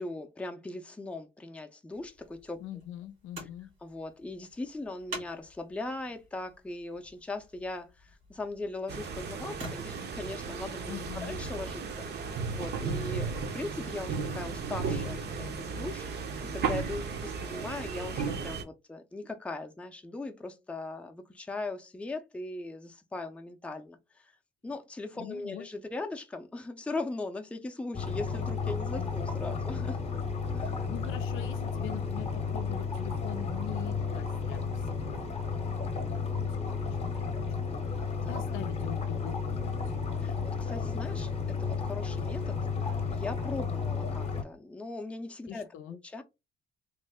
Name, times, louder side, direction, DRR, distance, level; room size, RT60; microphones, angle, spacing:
voice 1, 0.0-2.6 3.8-16.3 16.5-24.3 24.6-30.0 30.5-30.8 38.2-38.4 40.2-42.6 42.8-46.2, left 2 dB, 5° left, 0.5 m, -39 dB
sound 1, 1.9-10.6 11.6-11.7, right 2 dB, 90° right, 2.0 m, -49 dB
voice 2, 2.6-3.7 10.9-11.4 25.1-25.7 29.0-29.1 30.6-40.0 45.5-46.0, left 10 dB, 85° left, 0.4 m, -44 dB
sound 2, 8.9-18.6, right 5 dB, 55° right, 0.7 m, -35 dB
sound 3, 27.9-44.4, left 5 dB, 30° left, 0.8 m, -33 dB
3.1 x 2.1 x 3.4 m
cardioid pair, 90°, 20 cm